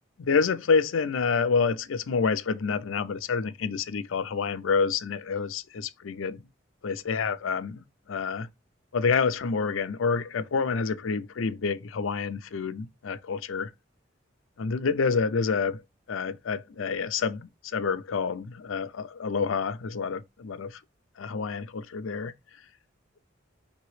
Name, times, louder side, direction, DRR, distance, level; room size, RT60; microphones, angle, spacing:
voice 1, 0.2-6.4 6.8-7.8 8.1-8.5 8.9-13.7 14.6-15.8 16.1-20.8 21.2-22.3, left 5 dB, 85° left, 0.5 m, -28 dB
5.3 x 2.9 x 3.1 m
head